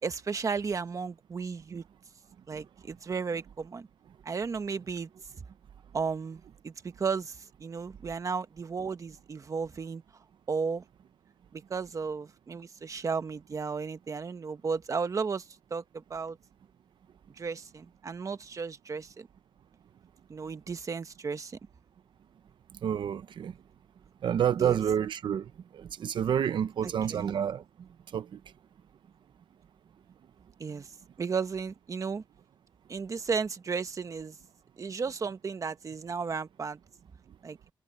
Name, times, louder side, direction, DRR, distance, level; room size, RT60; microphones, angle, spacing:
voice 1, 0.0-1.8 2.5-3.9 4.2-5.1 5.9-10.0 10.5-10.8 11.5-16.4 17.4-19.3 20.3-21.6 24.6-24.8 26.8-27.3 30.6-30.9 31.2-32.2 32.9-34.3 34.8-36.8 37.4-37.6, right 5 dB, 45° right, 1.3 m, -34 dB
voice 2, 22.8-23.5 24.2-25.4 25.7-27.6 28.1-28.3, right 9 dB, 80° right, 0.9 m, -28 dB
wide cardioid pair, 115°, 8 cm